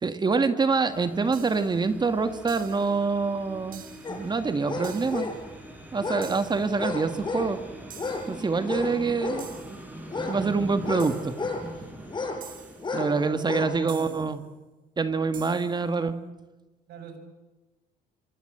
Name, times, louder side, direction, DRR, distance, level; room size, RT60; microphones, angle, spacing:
voice 1, 0.0-5.3 5.9-7.6 8.3-9.5 10.3-11.4 12.9-14.4 15.0-16.2, right 4 dB, 25° right, 9 dB, 1.7 m, -26 dB
sound 1, 0.9-13.3, right 1 dB, 10° right, 7.0 m, -43 dB
sound 2, 1.3-1.8 2.5-3.0 3.7-4.2 4.8-5.4 6.2-6.7 7.9-8.4 9.4-9.9 11.0-11.5 12.4-12.9 13.9-14.4 15.3-15.8, right 8 dB, 55° right, 2.8 m, -47 dB
sound 3, 4.0-4.2 4.7-5.4 6.0-6.3 6.8-7.5 7.9-8.3 8.6-9.5 10.1-11.6 12.1-12.4 12.8-13.1 13.4-13.7 14.2-14.3, left 3 dB, 25° left, 5.3 m, -32 dB
voice 2, 12.9-14.5 16.9-17.2, right 4 dB, 80° right, 7 dB, 6.4 m, -41 dB
26.0 x 25.5 x 8.0 m, 1.2 s
cardioid pair, 110°, 17 cm